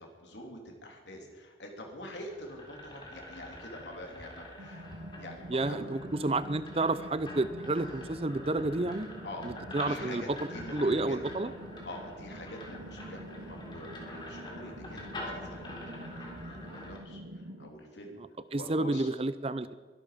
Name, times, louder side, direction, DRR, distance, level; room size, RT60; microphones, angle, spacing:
voice 1, 0.0-5.9 9.2-11.2 11.8-18.2 18.5-19.1, left 1 dB, 80° left, 1 dB, 3.4 m, -46 dB
sound 1, 2.0-17.0, left 1 dB, 25° left, 3.5 m, -45 dB
sound 2, 4.6-17.7, right 1 dB, 90° right, 1.1 m, -47 dB
voice 2, 5.5-9.1 9.4-10.2 10.7-11.5 18.5-19.7, right 2 dB, 35° right, 15 dB, 0.6 m, -30 dB
23.0 x 12.0 x 5.2 m, 1.4 s
head